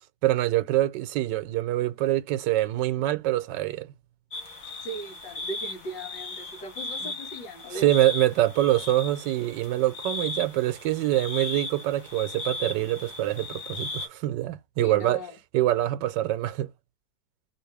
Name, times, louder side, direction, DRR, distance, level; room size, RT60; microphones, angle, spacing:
voice 1, 0.2-3.9 7.8-15.2 15.5-16.7, right 15 dB, 80° right, 1.3 m, -25 dB
sound 1, 4.3-14.1, left 3 dB, 50° left, 1.5 m, -37 dB
voice 2, 4.8-7.9 14.8-15.3, right 1 dB, 80° left, 2.4 m, -38 dB
4.0 x 2.9 x 3.3 m
omnidirectional pair, 2.0 m